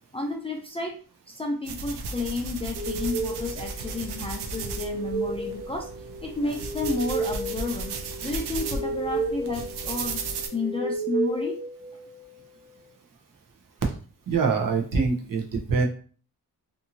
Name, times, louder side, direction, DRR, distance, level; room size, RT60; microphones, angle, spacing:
voice 1, 0.1-1.0 1.3-5.9 6.2-7.9 8.2-10.2 10.5-11.6, left 3 dB, 15° left, 0 dB, 0.4 m, -31 dB
sound 1, 1.6-10.5, right 4 dB, 85° right, 0.5 m, -35 dB
sound 2, 2.8-12.4, right 3 dB, 20° right, 0.9 m, -33 dB
voice 2, 14.3-15.9, right 4 dB, 60° right, 2 dB, 0.8 m, -24 dB
2.6 x 2.6 x 2.7 m, 0.41 s
wide cardioid pair, 110°, 38 cm